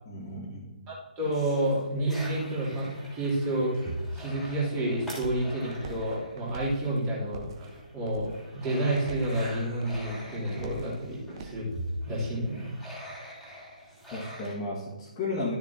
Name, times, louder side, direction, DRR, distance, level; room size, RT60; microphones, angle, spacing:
voice 1, 0.1-0.8 14.1-15.6, left 2 dB, 20° left, -9 dB, 1.9 m, -34 dB
voice 2, 0.9-3.7 4.1-11.6 12.1-12.7, right 1 dB, 20° right, -7 dB, 3.3 m, -30 dB
sound 1, 1.2-7.1 7.5-14.5, equal, ahead, 3.2 m, -42 dB
sound 2, 4.4-11.7, right 4 dB, 35° right, 1.1 m, -46 dB
12.5 x 6.9 x 2.9 m, 1.2 s
figure-of-eight pair, 135°, 5 cm